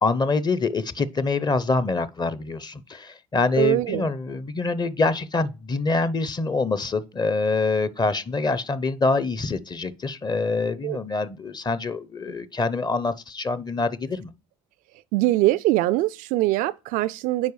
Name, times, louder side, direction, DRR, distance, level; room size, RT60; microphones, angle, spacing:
voice 1, 0.0-14.3, left 3 dB, 25° left, 0.8 m, -25 dB
voice 2, 3.6-4.1 10.8-11.0 12.3-12.4 15.1-17.5, right 17 dB, 60° right, 0.4 m, -22 dB
9.5 x 4.7 x 3.2 m
hypercardioid pair, 55°, 16 cm